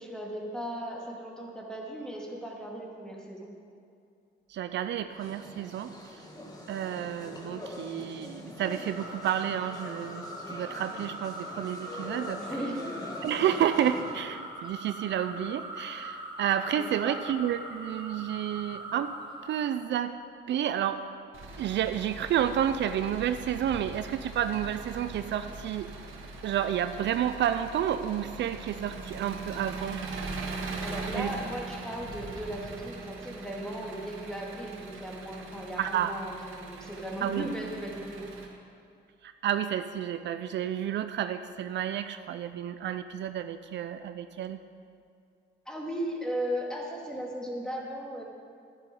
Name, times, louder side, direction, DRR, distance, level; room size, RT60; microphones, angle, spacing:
voice 1, 0.0-3.5 12.4-12.8 16.8-17.2 30.8-38.3 45.7-48.2, equal, 5° left, -2 dB, 2.4 m, -37 dB
voice 2, 4.5-6.2 6.7-12.6 13.2-19.1 19.4-20.2 20.5-21.0 21.6-25.9 26.4-30.0 31.1-31.3 35.8-36.1 37.2-37.5 39.2-44.6, right 10 dB, 65° right, 10 dB, 0.5 m, -30 dB
sound 1, 5.1-14.3, left 1 dB, 20° left, 1.8 m, -43 dB
sound 2, 8.8-19.6, right 1 dB, 25° right, 2.2 m, -42 dB
Engine, 21.3-38.5, right 3 dB, 85° right, 1.7 m, -41 dB
12.0 x 9.9 x 5.3 m, 2.4 s
cardioid pair, 90°, 20 cm